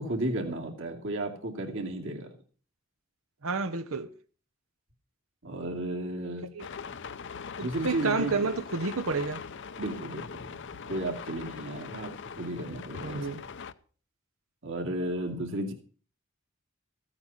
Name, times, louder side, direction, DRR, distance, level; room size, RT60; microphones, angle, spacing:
voice 1, 0.0-2.3 5.4-6.5 7.6-8.5 9.8-10.6 10.9-12.1 12.4-13.3 14.6-15.7, right 1 dB, 65° right, 2.6 m, -33 dB
voice 2, 3.4-4.1 6.5-6.7 7.6-9.4 13.0-13.5, right 4 dB, 85° right, 1.0 m, -30 dB
sound 1, 6.6-13.7, left 6 dB, 60° left, 0.7 m, -41 dB
15.0 x 8.8 x 5.6 m
head